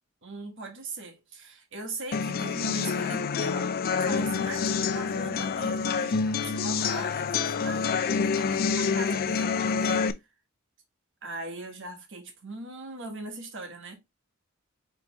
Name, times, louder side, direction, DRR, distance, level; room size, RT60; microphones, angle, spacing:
voice 1, 0.2-3.7 4.0-8.0 8.2-10.1 11.2-14.0, right 2 dB, 65° right, 1.3 m, -40 dB
sound 1, 2.1-10.1, left 5 dB, 45° left, 0.4 m, -27 dB
5.2 x 3.3 x 2.9 m
head